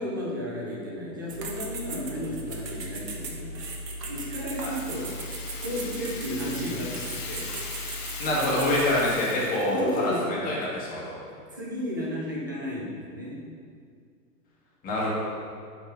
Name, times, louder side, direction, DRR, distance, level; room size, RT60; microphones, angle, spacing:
voice 1, 0.0-3.7 4.1-5.1 5.6-7.4 7.8-8.2 9.7-10.4 11.5-13.4, equal, 15° right, -4 dB, 0.3 m, -33 dB
sound 1, 1.3-9.1, right 1 dB, 85° right, 1.5 m, -37 dB
Rattle (instrument), 4.3-10.3, left 5 dB, 50° left, 1.4 m, -40 dB
voice 2, 8.2-11.2 14.8-15.1, left 1 dB, 15° left, -6 dB, 2.0 m, -26 dB
8.8 x 4.6 x 5.2 m, 2.2 s
hypercardioid pair, 140°, 48 cm